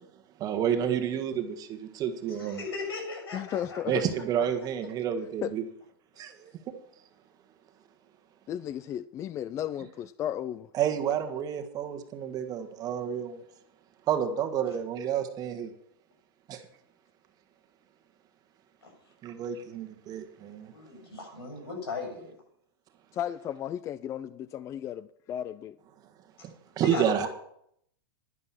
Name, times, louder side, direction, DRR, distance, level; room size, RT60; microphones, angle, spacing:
voice 1, 0.4-2.6 3.9-5.7 6.2-6.7 10.7-13.4 14.1-15.7 16.5-16.6 19.2-20.7 26.4-27.3, right 9 dB, 30° right, 1.5 m, -30 dB
voice 2, 2.3-4.0 18.8-18.9 20.6-22.3 26.4-26.5 26.8-27.3, left 4 dB, 90° left, 6.7 m, -37 dB
voice 3, 3.3-4.0 5.4-5.5 8.5-10.7 23.1-25.8, left 10 dB, 25° left, 0.4 m, -34 dB
11.0 x 11.0 x 5.9 m
hypercardioid pair, 130°, 13 cm